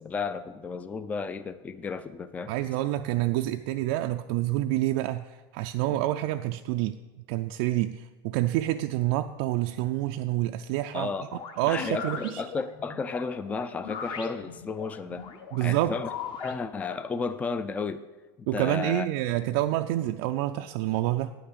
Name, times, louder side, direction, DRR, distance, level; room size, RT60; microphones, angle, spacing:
voice 1, 0.0-2.5 5.9-6.0 10.9-15.3 15.6-16.1 16.4-18.0 18.4-19.1, left 4 dB, 10° left, 13 dB, 0.3 m, -33 dB
voice 2, 2.5-7.0 7.3-11.1 11.6-12.4 15.5-15.9 18.5-21.3, right 15 dB, 60° right, 6 dB, 0.4 m, -28 dB
sound 1, 11.3-16.6, left 7 dB, 40° left, 1.0 m, -39 dB
9.1 x 5.7 x 6.6 m, 1.2 s
supercardioid pair, 130°, 13 cm